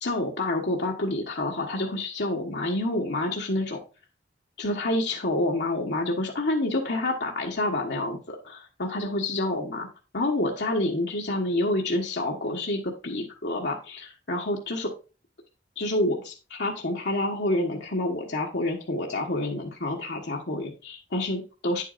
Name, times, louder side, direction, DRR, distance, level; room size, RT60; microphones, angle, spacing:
voice 1, 0.0-3.8 4.6-9.9 10.1-14.9 15.8-21.8, left 1 dB, 65° left, -1 dB, 1.3 m, -28 dB
9.1 x 8.1 x 2.6 m, 0.32 s
head